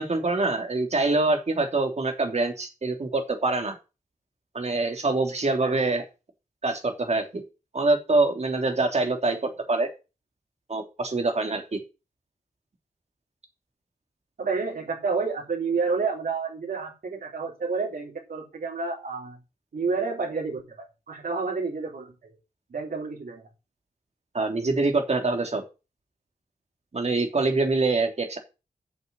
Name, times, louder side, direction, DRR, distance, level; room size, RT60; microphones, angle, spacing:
voice 1, 0.0-3.8 4.5-6.0 6.6-7.4 7.7-9.9 10.7-11.8 24.3-25.6 26.9-28.4, right 3 dB, 50° right, 4 dB, 3.1 m, -25 dB
voice 2, 14.4-19.4 19.7-22.4 22.7-23.5, right 4 dB, 80° right, -4 dB, 3.9 m, -30 dB
8.2 x 7.2 x 6.9 m, 0.28 s
wide cardioid pair, 125°, 15 cm